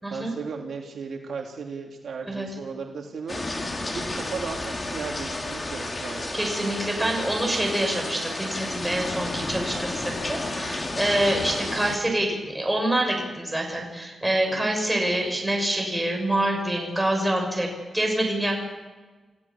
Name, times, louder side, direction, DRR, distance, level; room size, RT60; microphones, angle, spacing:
voice 1, 0.1-3.6 3.9-6.4 14.4-14.7, right 5 dB, 65° right, 1 dB, 2.8 m, -36 dB
sound 1, 3.3-12.0, left 2 dB, 25° left, 3.1 m, -32 dB
voice 2, 6.3-17.7 17.9-18.6, right 1 dB, 5° right, 0 dB, 6.3 m, -26 dB
29.0 x 15.5 x 7.2 m, 1.3 s
wide cardioid pair, 165°, 0 cm